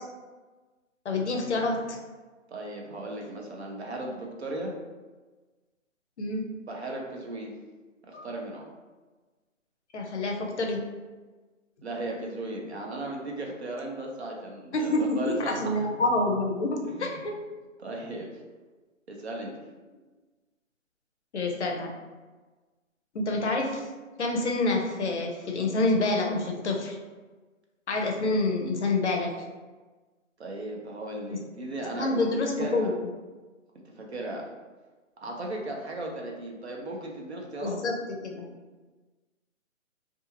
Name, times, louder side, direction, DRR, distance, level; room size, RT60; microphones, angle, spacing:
voice 1, 1.0-2.0 6.2-6.5 8.1-8.3 9.9-10.8 14.7-17.4 21.3-21.9 23.1-23.9 24.2-27.0 27.9-29.3 31.3-31.4 31.9-33.1 37.6-38.0 38.2-38.5, left 2 dB, 55° left, 2 dB, 0.6 m, -27 dB
voice 2, 2.5-4.7 6.6-7.5 8.1-8.6 11.8-15.9 16.9-17.2 17.8-18.4 19.1-19.6 30.4-32.9 33.7-34.5 35.2-37.8, right 2 dB, 55° right, 0 dB, 0.6 m, -36 dB
2.5 x 2.4 x 2.7 m, 1.3 s
hypercardioid pair, 170°, 40 cm